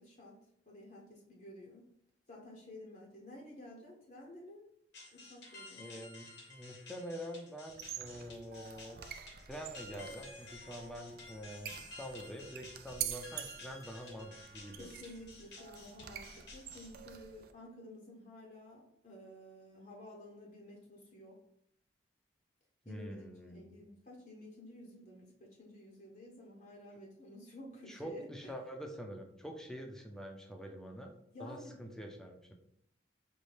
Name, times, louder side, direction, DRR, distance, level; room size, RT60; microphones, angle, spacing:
voice 1, 0.0-1.9 2.3-4.6 5.1-5.9 14.8-21.4 22.8-28.5 31.3-31.8, left 1 dB, 45° left, -1 dB, 0.7 m, -52 dB
sound 1, 4.9-16.9, left 3 dB, 75° left, 1.1 m, -53 dB
voice 2, 5.8-9.0 9.5-14.9 22.9-23.8 27.9-31.1 31.4-32.5, equal, 5° left, 2 dB, 0.5 m, -46 dB
sound 2, 7.7-17.5, right 10 dB, 55° right, 0.4 m, -47 dB
5.3 x 2.6 x 3.3 m, 0.73 s
head